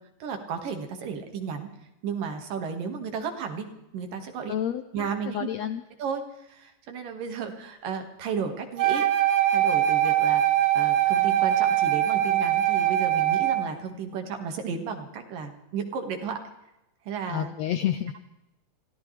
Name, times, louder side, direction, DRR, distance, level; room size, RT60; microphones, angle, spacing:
voice 1, 0.2-1.7 2.0-3.7 3.9-4.5 4.9-5.5 6.0-6.2 6.5-9.1 9.5-10.4 10.8-16.4 17.1-17.5, right 6 dB, 85° right, 5 dB, 3.6 m, -33 dB
voice 2, 4.5-5.1 5.3-5.8 17.3-18.1, left 10 dB, 80° left, 9 dB, 1.6 m, -29 dB
Wind instrument woodwind instrument, 8.8-13.7, right 12 dB, 55° right, 1.4 m, -22 dB
25.0 x 17.0 x 3.4 m, 0.90 s
omnidirectional pair, 3.8 m